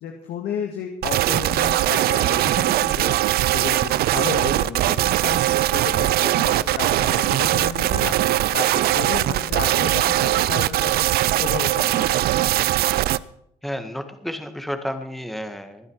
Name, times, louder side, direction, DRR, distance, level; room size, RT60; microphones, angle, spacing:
voice 1, 0.0-3.2 3.5-5.4 5.7-11.1 11.4-12.2, left 7 dB, 75° left, 3 dB, 1.9 m, -32 dB
sound 1, 1.0-13.2, right 14 dB, 65° right, 0.5 m, -21 dB
voice 2, 13.6-15.9, equal, ahead, 7 dB, 1.6 m, -31 dB
21.0 x 9.7 x 4.7 m, 0.74 s
cardioid pair, 110°, 17 cm